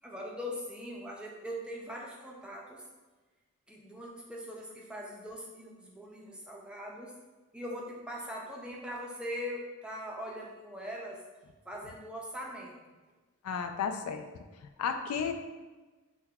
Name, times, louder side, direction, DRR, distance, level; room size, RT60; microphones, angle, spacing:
voice 1, 0.0-2.8 3.7-7.1 7.5-11.2 11.7-12.9, equal, 5° right, -2 dB, 0.4 m, -41 dB
voice 2, 13.4-14.2 14.8-15.3, left 6 dB, 80° left, 6 dB, 0.3 m, -32 dB
5.5 x 2.2 x 2.2 m, 1.2 s
head